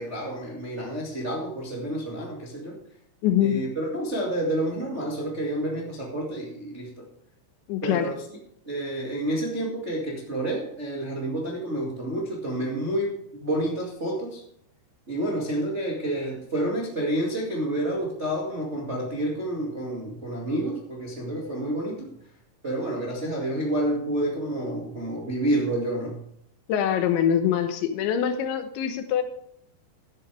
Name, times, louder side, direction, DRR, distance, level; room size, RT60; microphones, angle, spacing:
voice 1, 0.0-2.8 3.4-7.0 7.8-8.1 8.6-14.4 15.1-22.1 22.6-26.2, right 1 dB, 60° right, -3 dB, 0.7 m, -29 dB
voice 2, 3.2-3.6 7.7-8.1 26.7-29.2, left 9 dB, 80° left, 8 dB, 3.3 m, -24 dB
14.5 x 10.0 x 3.4 m, 0.70 s
omnidirectional pair, 5.4 m